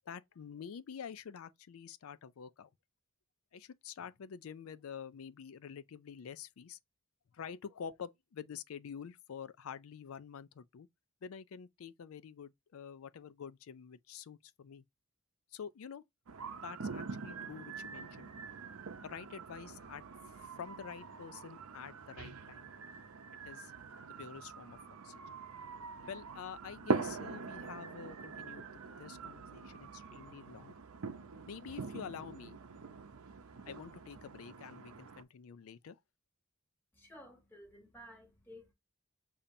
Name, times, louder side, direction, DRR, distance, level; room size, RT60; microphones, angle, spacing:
voice 1, 0.1-2.7 3.5-6.8 7.3-10.9 11.2-14.8 15.5-16.0 16.6-18.3 19.0-22.7 23.4-23.7 24.2-24.8 25.0-25.2 26.1-30.7 31.5-32.6 33.7-36.0, left 7 dB, 70° left, 0.4 m, -48 dB
sound 1, 16.3-35.2, right 4 dB, 90° right, 0.6 m, -43 dB
voice 2, 36.9-38.7, equal, 10° left, 1.5 m, -54 dB
6.7 x 2.8 x 2.6 m
head